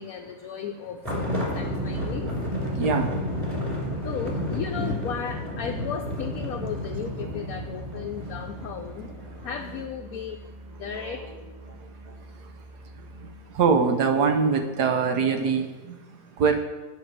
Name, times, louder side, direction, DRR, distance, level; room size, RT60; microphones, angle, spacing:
voice 1, 0.0-2.3 4.0-9.1 9.4-10.4 10.7-11.2, left 7 dB, 65° left, 3 dB, 1.0 m, -35 dB
Ambiente - interior coche circulando, 1.0-9.8, equal, 15° right, 2.5 m, -31 dB
voice 2, 2.7-3.2 3.6-3.9 9.0-9.1 11.8-12.5 12.8-16.6, right 5 dB, 75° right, 5 dB, 1.5 m, -25 dB
Musical instrument, 2.8-13.6, right 1 dB, 30° right, 0.9 m, -44 dB
9.2 x 5.2 x 7.6 m, 1.3 s
omnidirectional pair, 1.8 m